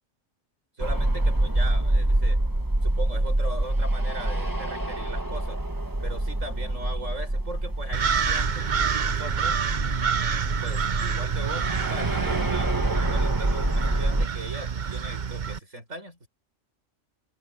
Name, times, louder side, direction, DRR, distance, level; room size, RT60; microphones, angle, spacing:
sound 1, 0.8-14.3, right 1 dB, 15° right, 1.5 m, -26 dB
voice 1, 0.8-2.4 2.8-5.6 6.0-9.6 10.6-12.7 13.0-16.3, right 1 dB, 80° right, 7.3 m, -39 dB
sound 2, 7.9-15.6, right 7 dB, 40° right, 0.8 m, -28 dB
omnidirectional pair, 1.3 m